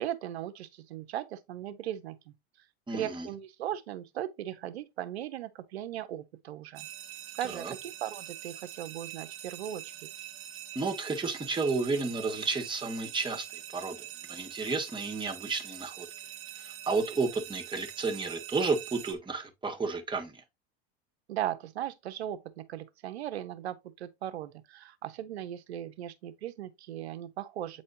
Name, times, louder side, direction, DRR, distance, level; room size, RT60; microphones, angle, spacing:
voice 1, 0.0-2.3 2.9-6.9 7.3-10.1 21.3-27.8, right 11 dB, 90° right, 1.0 m, -38 dB
voice 2, 2.9-3.3 7.4-7.7 10.8-16.1 16.6-20.4, right 4 dB, 15° right, 1.8 m, -32 dB
sound 1, 6.8-19.1, right 12 dB, 45° right, 1.3 m, -44 dB
8.7 x 4.3 x 2.8 m
hypercardioid pair, 105°, 32 cm